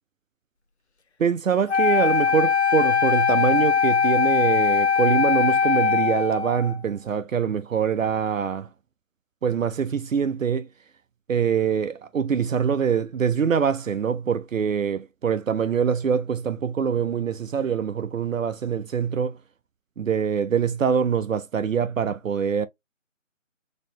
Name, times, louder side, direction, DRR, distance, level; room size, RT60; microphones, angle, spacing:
voice 1, 1.2-8.7 9.4-10.7 11.3-19.4 20.0-22.7, right 7 dB, 80° right, 0.5 m, -24 dB
Wind instrument woodwind instrument, 1.7-6.8, left 6 dB, 60° left, 0.6 m, -21 dB
4.1 x 2.7 x 2.9 m
figure-of-eight pair, 160°, 39 cm